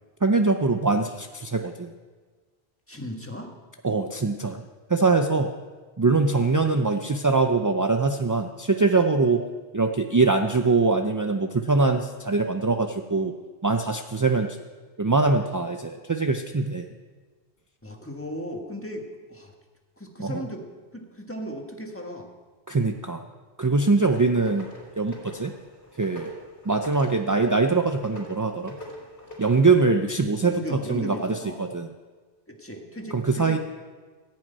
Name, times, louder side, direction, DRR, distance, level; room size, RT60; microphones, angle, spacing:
voice 1, 0.2-1.9 3.8-4.6 4.9-5.5 6.0-9.4 9.7-13.3 13.6-14.5 15.0-16.9 20.2-20.4 22.7-23.2 23.6-24.7 25.0-25.5 26.0-26.3 26.7-28.8 29.4-31.9 33.1-33.6, right 3 dB, 35° right, 5 dB, 0.3 m, -23 dB
voice 2, 2.9-3.5 17.8-19.5 20.0-20.6 20.9-22.3 30.4-31.6 32.5-33.6, equal, 10° left, 1 dB, 1.5 m, -36 dB
sound 1, 24.1-29.9, left 1 dB, 70° left, 4.1 m, -43 dB
15.0 x 6.2 x 9.2 m, 1.4 s
omnidirectional pair, 1.1 m